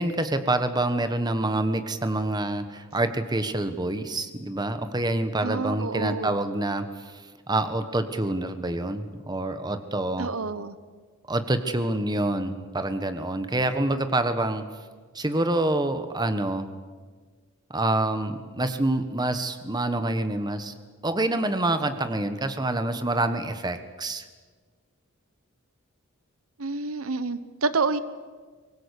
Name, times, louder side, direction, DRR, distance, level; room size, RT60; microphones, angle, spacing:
voice 1, 0.0-10.3 11.3-14.6 15.1-16.7 17.7-20.7 21.0-24.3, right 2 dB, 20° right, 9 dB, 1.3 m, -27 dB
voice 2, 5.4-6.4 10.2-10.7 26.6-28.0, right 4 dB, 85° right, 14 dB, 1.1 m, -28 dB
24.0 x 20.0 x 8.5 m, 1.5 s
head